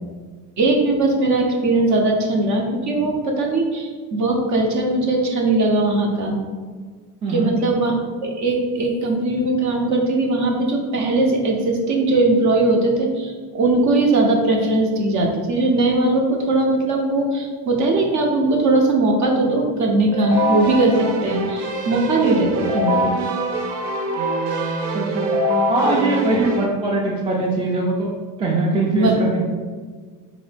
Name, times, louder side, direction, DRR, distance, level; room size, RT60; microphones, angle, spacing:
voice 1, 0.6-6.4 7.3-23.1 26.3-26.4 28.9-29.1, right 2 dB, 45° right, 1 dB, 0.7 m, -19 dB
voice 2, 7.2-7.5 24.9-25.3 25.7-28.1 28.4-29.4, right 2 dB, 15° right, -2 dB, 0.3 m, -21 dB
Keyboard (musical), 20.1-26.7, right 1 dB, 85° right, 0.7 m, -23 dB
3.9 x 2.6 x 3.3 m, 1.5 s
cardioid pair, 140°, 40 cm